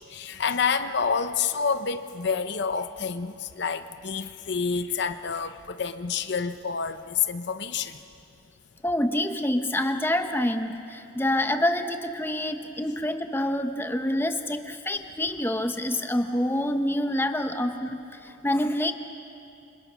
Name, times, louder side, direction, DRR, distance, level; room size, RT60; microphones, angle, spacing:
voice 1, 0.1-8.0, left 6 dB, 60° left, 10 dB, 0.7 m, -28 dB
voice 2, 8.8-18.9, left 1 dB, 10° left, 6 dB, 1.0 m, -27 dB
28.5 x 26.0 x 6.2 m, 2.6 s
head